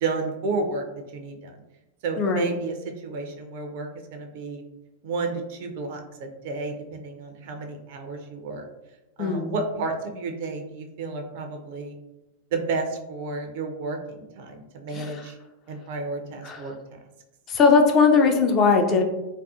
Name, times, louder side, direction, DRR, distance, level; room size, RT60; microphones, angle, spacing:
voice 1, 0.0-0.8 1.1-1.5 2.0-4.6 5.0-8.6 9.2-12.0 12.5-15.4 15.7-16.7, right 3 dB, 50° right, 4 dB, 0.4 m, -31 dB
voice 2, 2.2-2.5 9.2-9.5 14.9-15.1 16.4-16.6 17.5-19.0, left 4 dB, 30° left, 4 dB, 0.3 m, -19 dB
2.5 x 2.2 x 2.3 m, 0.98 s
figure-of-eight pair, 90°, 0 cm